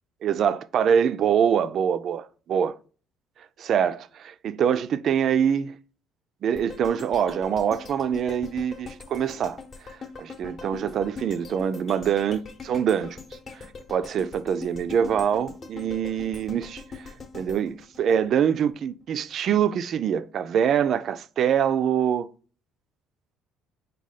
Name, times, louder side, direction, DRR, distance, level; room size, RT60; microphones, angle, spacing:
voice 1, 0.2-2.8 3.6-5.7 6.4-9.6 9.8-13.2 13.5-13.6 13.9-16.8 17.3-22.3, right 8 dB, 55° right, 0.3 m, -24 dB
sound 1, 6.5-18.7 19.1-19.2, left 4 dB, 40° left, 0.8 m, -42 dB
4.8 x 2.2 x 4.1 m
cardioid pair, 110°, 0 cm